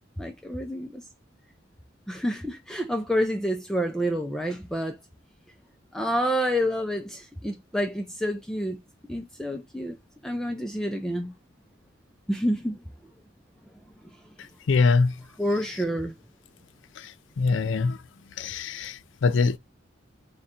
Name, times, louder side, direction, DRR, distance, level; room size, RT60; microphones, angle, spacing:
voice 1, 0.2-1.0 2.1-5.0 5.9-8.8 9.1-10.0 10.2-11.3 12.3-12.8 15.4-16.2, equal, 5° left, 0.3 m, -28 dB
voice 2, 14.7-15.1 17.4-18.0 18.4-19.6, left 4 dB, 75° left, 0.4 m, -23 dB
3.7 x 2.2 x 4.1 m
head